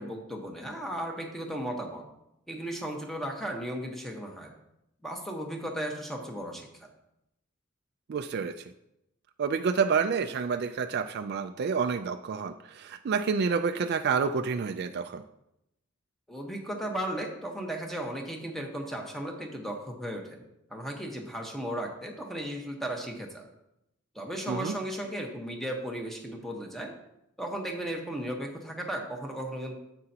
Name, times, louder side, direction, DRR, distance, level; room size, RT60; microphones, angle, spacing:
voice 1, 0.0-2.0 2.5-4.5 5.0-6.9 16.3-20.4 20.7-23.5 24.1-26.9 27.4-29.8, right 1 dB, ahead, 1 dB, 1.2 m, -35 dB
voice 2, 8.1-8.6 9.4-15.2 24.5-24.8, right 5 dB, 55° right, 7 dB, 0.4 m, -29 dB
9.8 x 7.7 x 2.8 m, 0.84 s
head